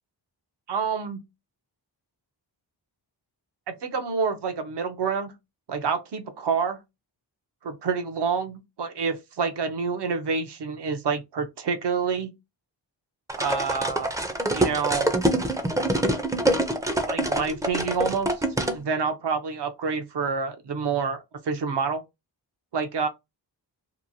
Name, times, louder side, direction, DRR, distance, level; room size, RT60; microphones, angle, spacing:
voice 1, 0.7-1.2 3.7-5.3 5.7-6.8 7.6-12.3 13.3-14.1 14.5-15.2 17.1-18.4 18.7-22.0 22.7-23.1, right 5 dB, 65° right, 0.7 m, -28 dB
sound 1, 13.3-18.8, right 1 dB, 10° right, 0.4 m, -25 dB
2.9 x 2.2 x 2.6 m
wide cardioid pair, 85°, 45 cm